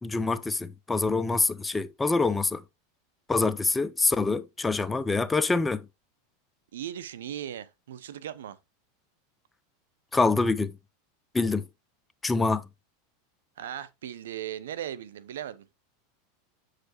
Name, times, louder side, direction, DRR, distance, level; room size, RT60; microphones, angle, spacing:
voice 1, 0.0-2.6 3.3-5.9 10.1-10.7 11.3-11.7 12.2-12.7, left 3 dB, 10° left, 0.5 m, -25 dB
voice 2, 6.7-8.6 13.6-15.7, right 10 dB, 80° right, 0.6 m, -37 dB
7.4 x 4.9 x 2.8 m
hypercardioid pair, 105°, 0 cm